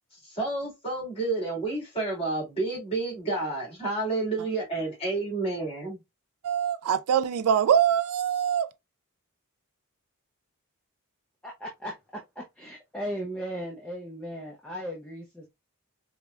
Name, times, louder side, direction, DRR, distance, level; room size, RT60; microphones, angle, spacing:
voice 1, 0.2-6.0, right 3 dB, 25° left, 2.0 m, -30 dB
voice 2, 6.4-8.7, right 9 dB, 80° right, 0.3 m, -23 dB
voice 3, 11.4-15.5, equal, 5° left, 0.5 m, -37 dB
4.5 x 2.1 x 2.3 m
head